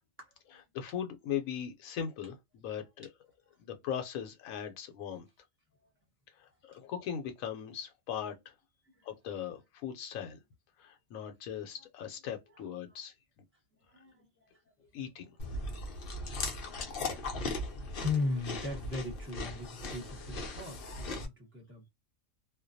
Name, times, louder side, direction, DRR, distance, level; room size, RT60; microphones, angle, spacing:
voice 1, 0.2-0.6 12.6-13.0 13.8-14.9 15.5-15.6 17.1-17.7 17.9-21.9, left 3 dB, 10° right, 0.9 m, -39 dB
voice 2, 0.7-3.1 3.6-5.3 6.4-6.5 6.7-8.5 9.0-10.4 10.8-13.1 14.9-15.3, left 8 dB, 85° left, 1.0 m, -39 dB
Chewing mastication, 15.4-21.3, left 2 dB, 50° left, 0.8 m, -38 dB
2.5 x 2.0 x 2.6 m
omnidirectional pair, 1.4 m